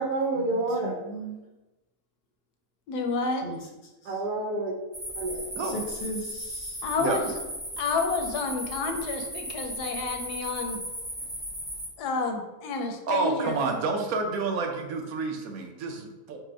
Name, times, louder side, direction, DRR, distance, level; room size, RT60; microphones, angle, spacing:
voice 1, 0.0-1.0 4.0-4.7 5.1-5.5, right 2 dB, 85° right, 1 dB, 1.3 m, -28 dB
voice 2, 0.8-1.4 3.4-3.6 5.6-6.8, equal, 45° left, 0 dB, 0.6 m, -37 dB
voice 3, 2.9-3.5 6.8-7.4 7.8-10.8 12.0-13.6, left 4 dB, 80° left, 4 dB, 1.2 m, -30 dB
sound 1, 4.9-11.9, equal, 10° right, 0.8 m, -36 dB
voice 4, 13.1-16.4, right 4 dB, 65° right, 3 dB, 1.1 m, -29 dB
4.9 x 2.1 x 4.6 m, 1.1 s
omnidirectional pair, 1.7 m